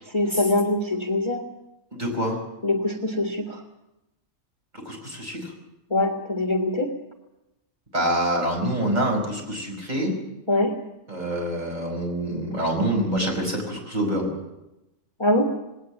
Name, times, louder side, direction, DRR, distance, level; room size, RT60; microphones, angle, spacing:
voice 1, 0.1-1.4 2.6-3.6 5.9-6.9 10.5-10.8 15.2-15.5, left 2 dB, 20° left, 2 dB, 1.6 m, -23 dB
voice 2, 1.9-2.4 4.7-5.5 7.9-10.1 11.1-14.3, right 1 dB, 35° right, 1 dB, 5.3 m, -26 dB
20.0 x 18.0 x 7.4 m, 0.94 s
omnidirectional pair, 1.4 m